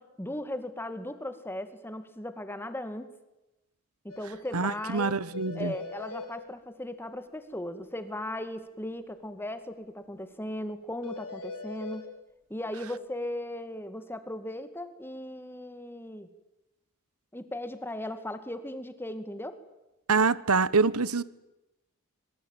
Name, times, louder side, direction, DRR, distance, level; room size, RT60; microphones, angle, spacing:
voice 1, 0.0-3.1 4.0-5.2 5.5-12.1 12.5-16.3 17.3-19.6, left 1 dB, 10° left, 2.1 m, -37 dB
sound 1, 4.1-4.2 4.5-4.6 4.9-5.0 5.3-6.3 11.0-12.0, left 3 dB, 75° left, 5.4 m, -40 dB
voice 2, 4.5-5.7 20.1-21.2, right 4 dB, 90° right, 1.1 m, -25 dB
26.0 x 23.0 x 9.1 m
head